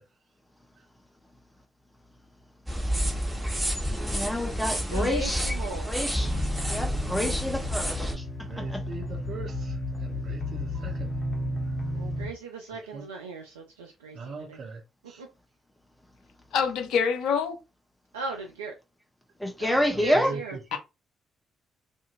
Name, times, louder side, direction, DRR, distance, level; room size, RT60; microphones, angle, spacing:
sound 1, 2.7-8.1, equal, 10° right, 1.2 m, -29 dB
voice 1, 3.9-5.5 5.9-6.3 6.7-7.8 8.5-8.8 19.4-20.5, equal, 5° left, 0.7 m, -28 dB
voice 2, 4.9-6.4 11.9-14.6 15.2-15.3 18.1-18.7 19.6-20.6, right 3 dB, 85° right, 0.3 m, -38 dB
sound 2, 6.2-12.3, left 1 dB, 35° left, 1.0 m, -33 dB
voice 3, 8.5-9.7 10.0-11.1 12.9-13.0 14.2-14.8 15.1-15.2 19.9-20.4 20.7-20.8, right 4 dB, 55° right, 0.7 m, -40 dB
voice 4, 16.5-17.6 20.7-20.8, left 6 dB, 65° left, 0.5 m, -25 dB
2.7 x 2.5 x 2.4 m
figure-of-eight pair, 40°, 0 cm